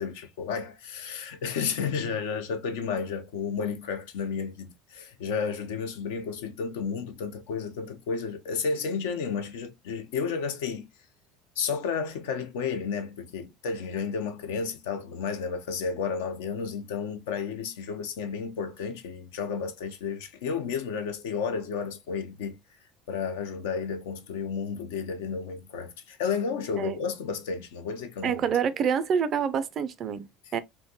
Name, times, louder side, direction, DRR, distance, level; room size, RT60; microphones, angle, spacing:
voice 1, 0.0-10.9 11.6-22.6 23.1-28.4, left 6 dB, 70° left, 0.5 m, -32 dB
voice 2, 28.2-30.6, right 7 dB, 45° right, 0.4 m, -27 dB
2.5 x 2.1 x 2.7 m
hypercardioid pair, 70°, 0 cm